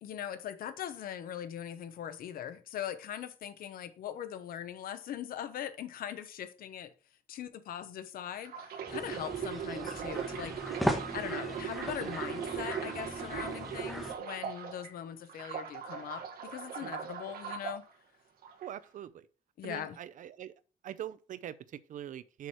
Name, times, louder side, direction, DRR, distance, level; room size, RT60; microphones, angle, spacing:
voice 1, 0.0-6.9 7.3-8.5 8.9-10.5 11.1-17.8 19.6-20.0, left 10 dB, 70° left, 1.1 m, -40 dB
sound 1, 8.4-14.9 15.3-17.8 18.4-18.7, right 8 dB, 80° right, 1.6 m, -39 dB
sound 2, 8.9-14.1, equal, ahead, 1.3 m, -38 dB
voice 2, 18.6-19.2 19.6-20.5 20.8-22.5, right 11 dB, 60° right, 0.6 m, -43 dB
6.9 x 6.3 x 4.5 m
cardioid pair, 145°, 15 cm